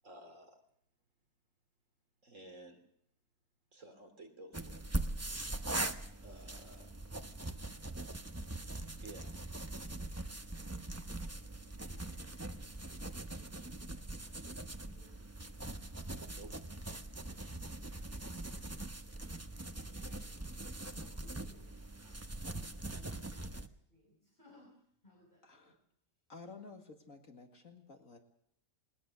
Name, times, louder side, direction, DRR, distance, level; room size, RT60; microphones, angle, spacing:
voice 1, 0.0-0.6 2.2-2.8 3.7-4.9 6.2-6.9 9.0-9.3 16.3-16.5, right 2 dB, 55° right, 5 dB, 3.5 m, -53 dB
sound 1, 4.5-23.7, right 2 dB, 15° right, 0.8 m, -42 dB
voice 2, 11.8-12.2 14.8-15.3 17.7-18.2 19.9-20.3 20.9-21.7 22.0-22.2 22.5-23.4 23.9-25.8, left 1 dB, 30° left, -1 dB, 5.1 m, -64 dB
voice 3, 25.4-25.8 26.3-28.2, left 4 dB, 60° left, 4 dB, 2.3 m, -53 dB
20.5 x 20.5 x 6.5 m, 0.71 s
omnidirectional pair, 1.6 m